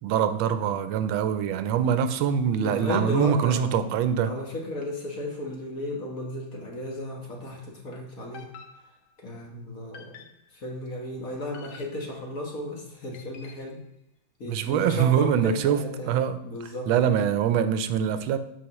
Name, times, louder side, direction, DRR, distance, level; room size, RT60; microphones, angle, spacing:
voice 1, 0.0-4.3 14.5-18.4, right 8 dB, 80° right, 11 dB, 1.4 m, -24 dB
voice 2, 2.6-3.8 4.2-8.5 9.2-10.2 10.5-13.8 14.4-17.2, left 1 dB, 45° left, 0 dB, 1.6 m, -34 dB
sound 1, 8.3-9.3 9.9-10.6 11.5-12.4 13.1-13.8, left 6 dB, 65° left, 1.1 m, -49 dB
12.5 x 4.9 x 3.0 m, 0.78 s
omnidirectional pair, 2.2 m